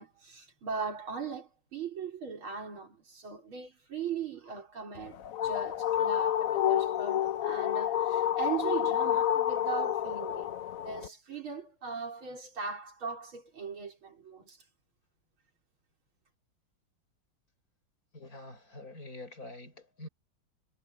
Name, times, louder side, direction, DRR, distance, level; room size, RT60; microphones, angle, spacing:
voice 1, 0.0-14.6, right 6 dB, 85° right, 5.1 m, -39 dB
sound 1, 5.0-11.1, left 11 dB, 60° left, 0.9 m, -29 dB
voice 2, 18.1-20.1, left 2 dB, 45° left, 5.9 m, -46 dB
omnidirectional pair, 2.2 m